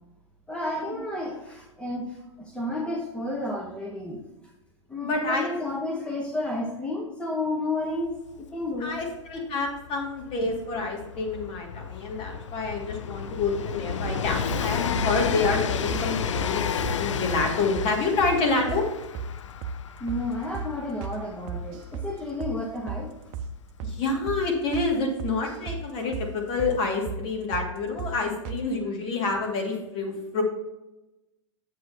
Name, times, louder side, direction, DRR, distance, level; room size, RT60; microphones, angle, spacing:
voice 1, 0.5-4.2 4.9-8.1 8.4-9.0 20.0-23.1, left 1 dB, 5° left, -2 dB, 1.1 m, -31 dB
voice 2, 5.0-5.5 8.8-18.8 23.8-30.4, left 3 dB, 35° left, 1 dB, 2.1 m, -28 dB
Train, 8.1-8.2 8.4-25.0 26.0-26.1, left 8 dB, 75° left, 0.5 m, -32 dB
sound 1, 14.0-14.7 15.0-15.1 15.4-15.6 15.9-16.1 16.4-16.5 16.8-17.0 17.3-17.4 17.8-18.4 18.7-18.8 19.1-19.3 19.6-19.8 20.1-20.2 20.5-20.7 21.0-21.2 21.5-22.1 22.4-22.6 22.9-23.0 23.3-23.5 23.8-24.0 24.3-24.4 24.7-24.9 25.2-25.8 26.1-26.3 26.6-26.8 27.1-27.2 27.5-27.7 28.0-28.1 28.4-28.6, right 6 dB, 40° right, 0.8 m, -34 dB
7.9 x 7.6 x 2.8 m, 0.98 s
hypercardioid pair, 110°, 16 cm